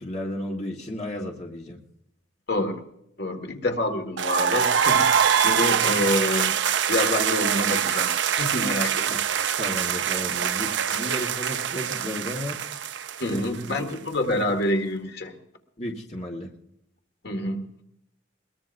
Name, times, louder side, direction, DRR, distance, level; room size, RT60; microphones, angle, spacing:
voice 1, 0.0-1.8 9.1-9.2 9.6-12.6 13.3-13.4 15.8-16.5, left 1 dB, 35° left, 0 dB, 1.5 m, -33 dB
voice 2, 3.2-6.6 6.9-9.1 13.2-15.3 17.2-17.7, left 1 dB, 60° left, 4 dB, 1.8 m, -27 dB
sound 1, 4.2-13.9, right 8 dB, 70° right, 0.5 m, -24 dB
22.0 x 20.0 x 2.6 m, 0.78 s
head